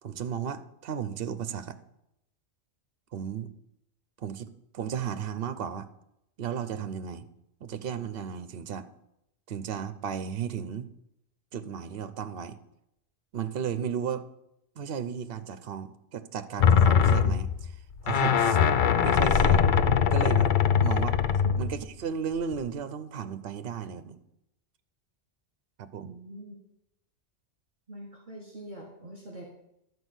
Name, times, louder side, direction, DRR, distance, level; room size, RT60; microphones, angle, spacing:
voice 1, 0.0-1.8 3.1-3.5 4.2-5.9 6.4-7.2 7.6-8.9 9.5-10.9 11.5-12.6 13.3-14.2 14.8-17.8 18.0-18.6 19.0-19.6 20.1-20.5 20.8-21.2 21.6-24.2 25.8-26.2, right 7 dB, 60° right, 12 dB, 0.9 m, -34 dB
sound 1, 16.6-21.9 22.5-22.6, left 7 dB, 55° left, 0.6 m, -22 dB
voice 2, 26.0-26.6 27.9-29.5, right 1 dB, 45° right, -1 dB, 1.9 m, -43 dB
12.0 x 4.8 x 8.0 m, 0.83 s
omnidirectional pair, 1.2 m